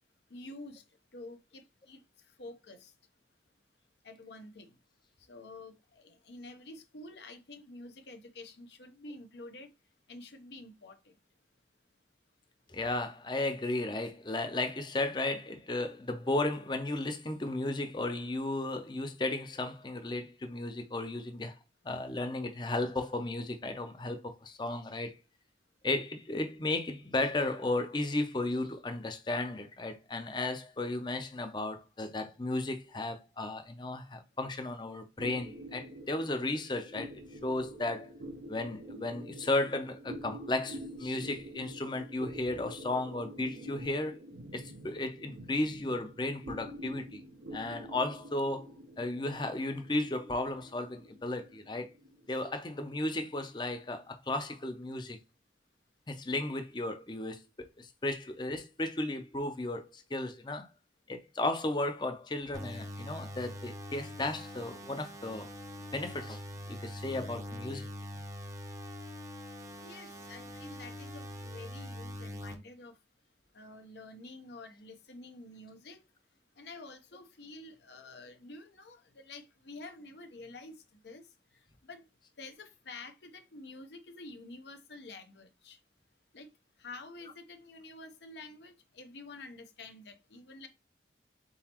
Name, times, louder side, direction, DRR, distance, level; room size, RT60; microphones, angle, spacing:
voice 1, 0.3-0.8 1.1-2.0 2.4-2.9 4.0-4.7 5.3-9.7 10.1-11.2 69.8-73.0 73.5-76.0 76.6-81.2 81.8-82.1 82.4-85.8 86.3-86.5 86.8-90.7, left 2 dB, 75° left, 0.8 m, -49 dB
voice 2, 12.7-21.6 21.8-25.2 25.8-37.1 37.4-38.1 38.5-44.2 44.5-47.2 47.5-51.9 52.3-55.2 56.1-60.7 61.1-65.5 65.9-66.4 66.7-67.9, left 2 dB, 25° left, 0.6 m, -34 dB
sound 1, 35.2-53.9, right 1 dB, 75° right, 0.6 m, -48 dB
sound 2, 62.5-72.5, left 1 dB, 20° right, 0.7 m, -43 dB
4.1 x 3.8 x 2.9 m
head